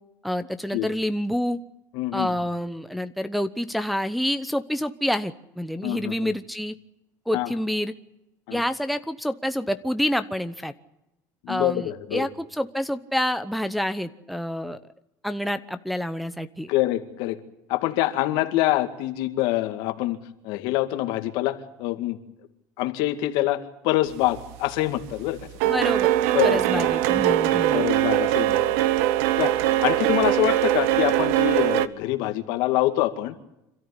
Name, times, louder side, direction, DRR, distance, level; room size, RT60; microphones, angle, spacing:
voice 1, 0.2-1.6 2.1-6.8 7.3-7.9 8.5-10.7 11.5-14.8 15.2-16.7 25.6-26.1 26.4-27.8, equal, ahead, 9 dB, 0.9 m, -28 dB
voice 2, 1.9-2.3 5.8-6.3 7.3-7.5 8.5-8.6 11.4-12.3 16.7-17.4 17.7-20.2 20.4-22.2 22.8-25.5 26.3-26.9 27.7-28.8 29.4-33.3, left 15 dB, 70° left, 8 dB, 2.3 m, -25 dB
sound 1, 24.3-24.7 25.0-31.9, right 13 dB, 90° right, 1.1 m, -22 dB
27.0 x 13.5 x 9.8 m, 0.88 s
cardioid pair, 140°, 8 cm